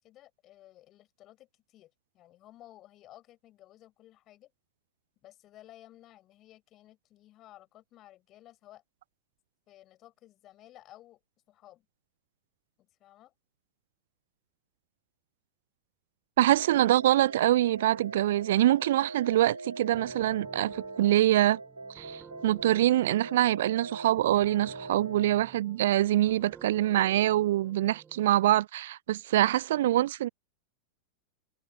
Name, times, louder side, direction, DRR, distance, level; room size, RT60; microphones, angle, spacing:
voice 1, 0.0-4.5 5.2-8.8 9.7-11.2 11.5-11.8 12.8-13.3, left 14 dB, 35° left, 6.6 m, -55 dB
voice 2, 16.4-21.6 22.0-30.3, right 14 dB, 55° right, 0.4 m, -25 dB
sound 1, 16.6-25.3, right 3 dB, 80° right, 2.4 m, -42 dB
sound 2, 19.9-28.4, right 6 dB, 20° right, 3.6 m, -52 dB
figure-of-eight pair, 90°, 0 cm